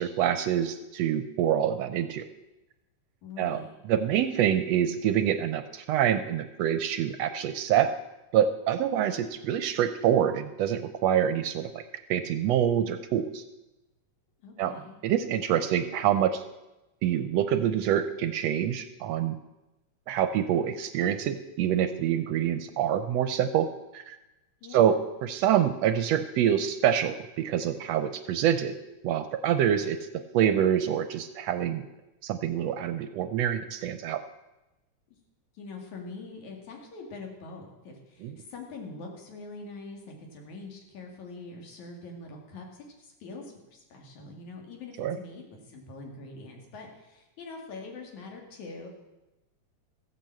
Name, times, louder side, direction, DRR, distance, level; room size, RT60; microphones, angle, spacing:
voice 1, 0.0-2.2 3.4-3.6 3.9-7.9 8.3-11.8 12.1-13.4 14.6-14.7 15.0-16.4 17.0-19.4 20.1-23.7 23.9-24.2 24.7-28.7 29.0-31.8 32.2-34.2 38.2-38.3 45.0-45.2, right 10 dB, 75° right, 10 dB, 1.6 m, -26 dB
voice 2, 3.2-3.7 14.4-15.0 24.6-25.0 35.1-35.2 35.5-48.9, left 3 dB, 75° left, 1 dB, 3.6 m, -44 dB
15.0 x 8.2 x 7.6 m, 1.0 s
omnidirectional pair, 3.3 m